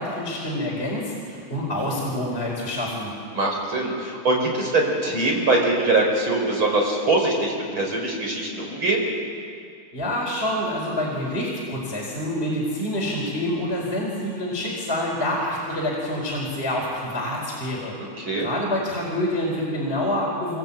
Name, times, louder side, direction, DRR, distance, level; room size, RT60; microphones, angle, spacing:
voice 1, 0.0-3.1 9.9-17.9 18.4-20.6, left 1 dB, 15° left, -3 dB, 4.2 m, -27 dB
voice 2, 3.3-9.1 18.0-18.5, right 2 dB, 25° right, 0 dB, 5.5 m, -23 dB
26.0 x 22.5 x 9.1 m, 2.3 s
omnidirectional pair, 5.3 m